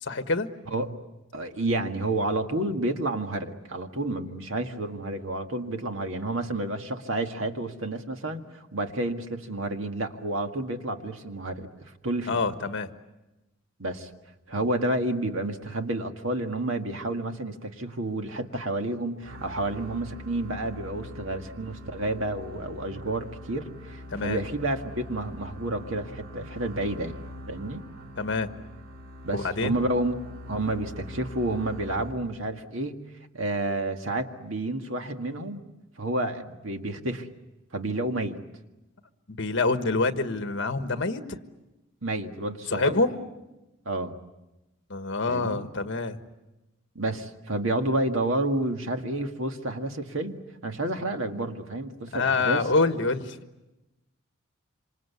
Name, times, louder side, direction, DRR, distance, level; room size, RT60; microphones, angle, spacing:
voice 1, 0.0-0.5 12.3-12.9 24.1-24.4 28.2-28.5 29.3-29.8 39.3-41.4 42.7-43.2 44.9-46.2 52.1-53.4, left 3 dB, 60° left, 8 dB, 1.5 m, -26 dB
voice 2, 0.7-1.0 1.3-11.7 12.0-12.4 13.8-14.1 14.5-27.1 27.5-27.8 29.2-30.2 30.5-33.0 33.3-35.6 36.0-37.3 37.7-38.4 42.0-43.0 43.9-44.2 45.3-45.7 47.0-52.6, right 1 dB, 70° right, 5 dB, 1.9 m, -30 dB
sound 1, 19.2-32.6, left 1 dB, 85° right, 2.9 m, -43 dB
27.0 x 26.5 x 8.4 m, 1.0 s
head